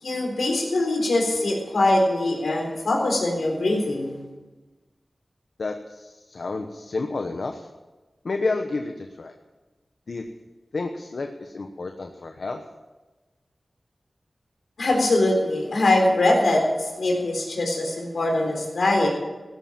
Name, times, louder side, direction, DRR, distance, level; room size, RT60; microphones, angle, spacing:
voice 1, 0.0-4.2 14.8-19.1, left 2 dB, 90° left, 1 dB, 3.9 m, -22 dB
voice 2, 5.6-7.7 8.2-9.3 10.1-10.2 10.7-12.6, left 3 dB, 75° left, 5 dB, 1.0 m, -30 dB
16.5 x 9.5 x 7.4 m, 1.2 s
wide cardioid pair, 70°, 0 cm